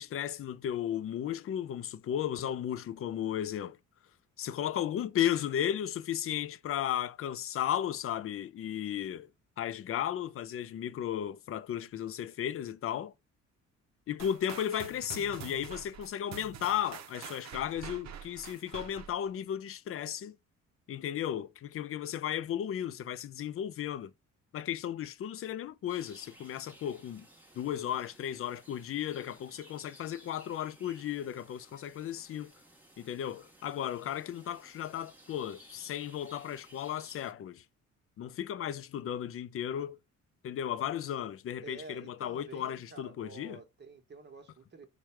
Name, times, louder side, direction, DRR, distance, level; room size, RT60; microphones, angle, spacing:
voice 1, 0.0-3.8 4.4-9.3 9.6-13.1 14.1-20.4 20.9-24.1 24.5-27.2 27.6-32.5 33.0-37.6 38.2-40.0 40.4-43.6, left 10 dB, 45° left, 0.5 m, -35 dB
sound 1, 14.2-19.3, right 8 dB, 65° right, 0.7 m, -46 dB
sound 2, 25.9-37.3, right 1 dB, 5° right, 1.3 m, -57 dB
voice 2, 41.6-44.9, right 4 dB, 35° right, 1.2 m, -49 dB
4.6 x 2.3 x 4.4 m
cardioid pair, 90°, 30 cm